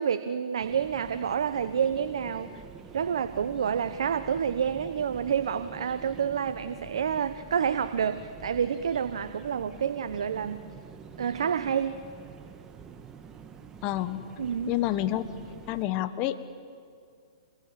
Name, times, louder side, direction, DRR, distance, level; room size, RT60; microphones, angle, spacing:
voice 1, 0.0-2.6 2.9-10.7 11.2-12.0 14.4-14.8, right 7 dB, 75° right, 11 dB, 1.0 m, -29 dB
sound 1, 0.6-15.8, right 6 dB, 20° right, 1.7 m, -47 dB
voice 2, 13.8-14.2 14.7-15.2 15.7-16.4, left 14 dB, 35° left, 12 dB, 1.5 m, -28 dB
27.0 x 22.5 x 8.7 m, 2.3 s
hypercardioid pair, 135°, 3 cm